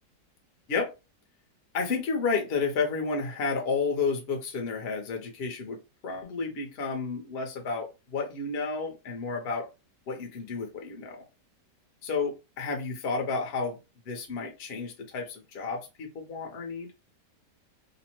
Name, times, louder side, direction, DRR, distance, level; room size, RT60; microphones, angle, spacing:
voice 1, 1.7-9.7 10.1-11.2 12.0-13.8 14.1-16.9, left 4 dB, 55° left, 2 dB, 0.6 m, -31 dB
2.8 x 2.0 x 2.9 m, 0.27 s
omnidirectional pair, 1.8 m